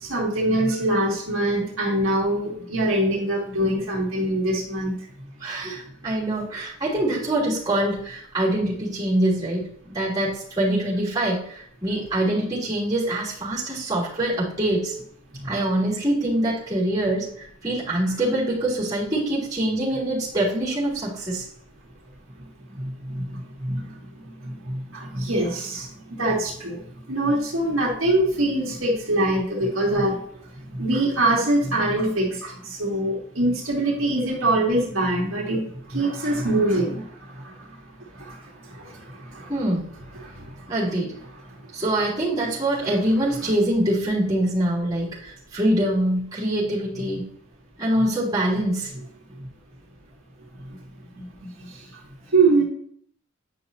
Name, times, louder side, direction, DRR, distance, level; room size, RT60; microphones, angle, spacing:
voice 1, 0.0-4.9 22.8-23.2 23.7-23.9 24.9-25.9 26.2-26.8 27.1-30.2 30.8-35.6 35.9-37.0 38.2-38.4 38.8-38.9 39.3-39.5 40.1-40.3 42.8-42.9 52.3-52.6, right 1 dB, 75° right, -3 dB, 2.2 m, -23 dB
voice 2, 5.4-14.9 15.4-21.5 39.5-39.9 40.7-41.2 41.7-47.3 47.8-48.9, right 1 dB, 20° right, -7 dB, 3.2 m, -24 dB
9.8 x 5.6 x 2.8 m, 0.62 s
head